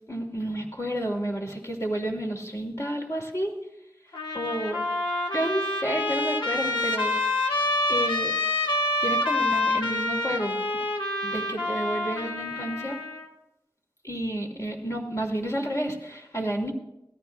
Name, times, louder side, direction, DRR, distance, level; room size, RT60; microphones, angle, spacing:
voice 1, 0.1-3.5 4.3-4.8 5.3-7.5 7.9-8.3 9.0-10.5 11.2-13.0 14.0-16.7, right 1 dB, 35° left, 0 dB, 2.7 m, -30 dB
Trumpet, 4.1-13.3, left 2 dB, 85° left, 1.5 m, -27 dB
19.0 x 13.5 x 2.3 m, 0.88 s
wide cardioid pair, 45°, 8 cm